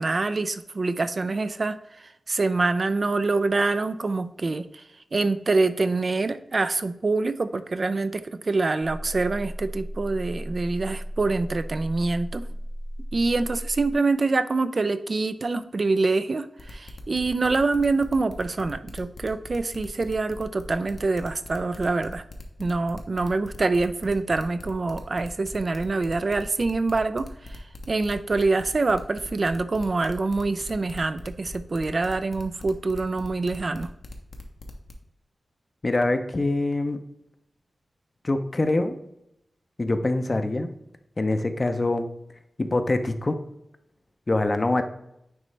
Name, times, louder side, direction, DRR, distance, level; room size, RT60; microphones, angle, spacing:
voice 1, 0.0-4.8 5.1-12.5 13.1-22.2 22.6-33.9, right 3 dB, 50° right, 11 dB, 0.4 m, -25 dB
sound 1, 8.8-13.9, equal, 15° right, 0.8 m, -35 dB
sound 2, 16.6-34.9, left 2 dB, 70° left, 0.9 m, -41 dB
voice 2, 35.8-37.0 38.2-39.0 39.8-40.7 41.2-42.1 42.6-43.4 44.3-44.8, left 2 dB, 35° left, 8 dB, 0.6 m, -24 dB
9.2 x 3.2 x 3.3 m, 0.81 s
wide cardioid pair, 80°, 0 cm